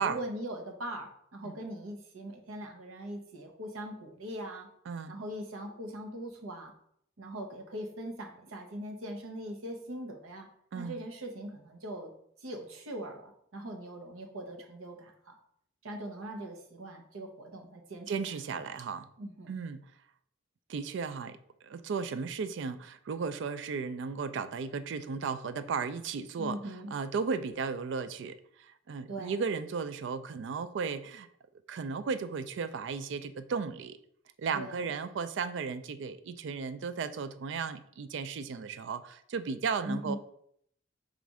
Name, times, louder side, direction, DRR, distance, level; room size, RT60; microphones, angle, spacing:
voice 1, 0.0-4.7 5.1-6.7 7.2-10.5 10.7-12.1 12.4-15.4 15.8-18.7 19.2-19.6 26.4-26.9 29.1-29.4 34.5-34.8 39.8-40.2, right 1 dB, 90° right, 3 dB, 0.8 m, -41 dB
voice 2, 4.9-5.2 10.7-11.0 18.1-19.1 19.5-19.8 20.7-21.4 21.6-26.6 26.9-31.3 31.7-34.0 34.4-40.2, right 5 dB, 60° right, 12 dB, 0.3 m, -35 dB
4.0 x 2.5 x 4.7 m, 0.69 s
head